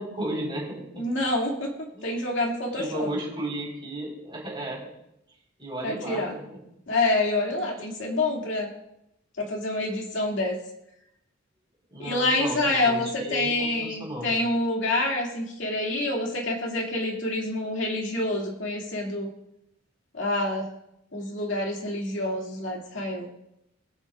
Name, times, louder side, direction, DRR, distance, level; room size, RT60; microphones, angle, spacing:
voice 1, 0.0-1.1 1.9-2.2 2.7-4.8 5.6-6.4 7.6-7.7 11.9-14.3, right 1 dB, 25° right, -4 dB, 4.3 m, -34 dB
voice 2, 1.0-1.7 2.0-3.1 5.8-6.3 6.9-8.7 9.4-10.6 12.0-19.3 20.1-20.7 21.1-23.3, left 2 dB, 65° left, -1 dB, 2.4 m, -27 dB
21.5 x 8.0 x 2.5 m, 0.82 s
head